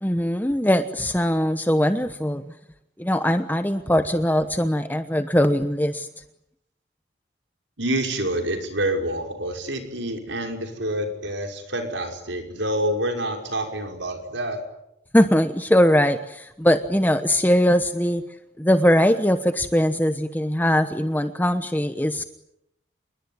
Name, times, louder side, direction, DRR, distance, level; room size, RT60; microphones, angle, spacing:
voice 1, 0.0-2.4 3.0-6.1 15.1-18.2 18.6-22.2, equal, 10° left, 9 dB, 1.0 m, -21 dB
voice 2, 7.8-14.6, right 1 dB, 80° right, 4 dB, 5.7 m, -27 dB
28.0 x 21.5 x 9.6 m, 0.82 s
head